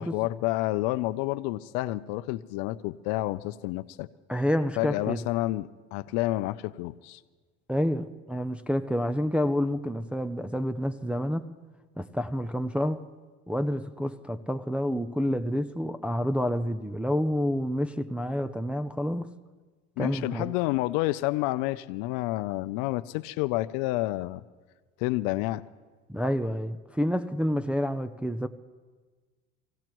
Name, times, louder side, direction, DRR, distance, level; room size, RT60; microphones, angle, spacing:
voice 1, 0.0-4.1 4.8-7.2 20.0-24.4 25.0-25.6, left 18 dB, 80° left, 0.5 m, -29 dB
voice 2, 4.3-5.2 7.7-11.5 12.0-13.0 13.5-19.3 20.0-20.5 26.1-28.5, equal, 5° right, 0.4 m, -28 dB
26.5 x 16.5 x 3.0 m
supercardioid pair, 105°, 31 cm